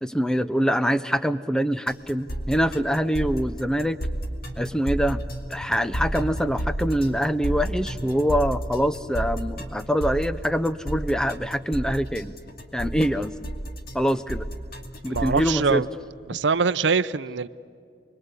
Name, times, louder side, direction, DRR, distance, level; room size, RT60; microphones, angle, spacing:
voice 1, 0.0-4.0 4.6-5.2 5.5-12.3 12.7-13.3 13.9-14.5 15.0-15.8 16.3-16.4, equal, 5° left, 13 dB, 0.6 m, -24 dB
sound 1, 1.9-15.5, right 1 dB, 50° left, 2.5 m, -31 dB
voice 2, 15.1-15.9 16.3-17.5, right 5 dB, 75° right, 12 dB, 0.6 m, -23 dB
29.5 x 22.0 x 8.2 m, 2.4 s
head